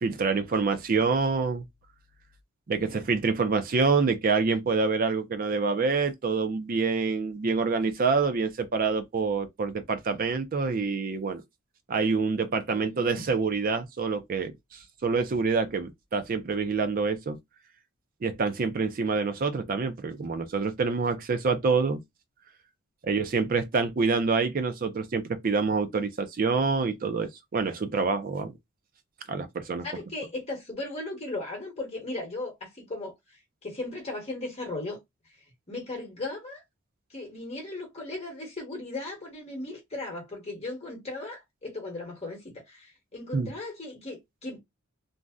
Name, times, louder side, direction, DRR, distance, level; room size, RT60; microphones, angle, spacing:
voice 1, 0.0-1.6 2.7-11.4 11.9-17.4 18.2-22.0 23.0-28.5 29.3-29.9 43.3-43.5, right 4 dB, 45° right, 0.4 m, -26 dB
voice 2, 2.7-3.0 12.7-13.2 29.8-36.6 37.1-44.6, left 2 dB, 30° left, 1.1 m, -37 dB
2.6 x 2.0 x 3.5 m
head